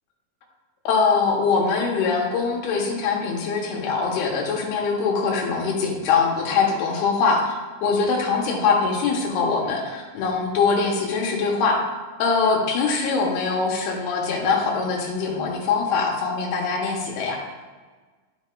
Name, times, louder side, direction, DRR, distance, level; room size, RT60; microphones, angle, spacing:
voice 1, 0.8-7.5 7.8-11.8 12.2-17.4, left 4 dB, 85° left, -1 dB, 3.2 m, -22 dB
12.0 x 5.6 x 2.5 m, 1.4 s
omnidirectional pair, 4.5 m